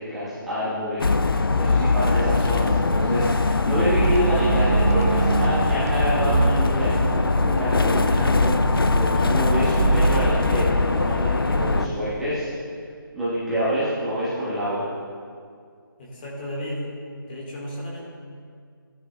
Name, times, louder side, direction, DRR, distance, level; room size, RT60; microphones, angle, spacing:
voice 1, 0.0-12.5 13.1-14.9, equal, ahead, -13 dB, 1.6 m, -27 dB
sound 1, 1.0-11.9, left 3 dB, 75° left, 0.5 m, -22 dB
sound 2, 3.7-10.6, right 3 dB, 40° right, 0.7 m, -25 dB
voice 2, 11.4-12.0 16.0-16.8 17.2-18.1, equal, 25° left, -4 dB, 1.8 m, -33 dB
15.5 x 10.0 x 2.3 m, 2.1 s
figure-of-eight pair, 155°, 12 cm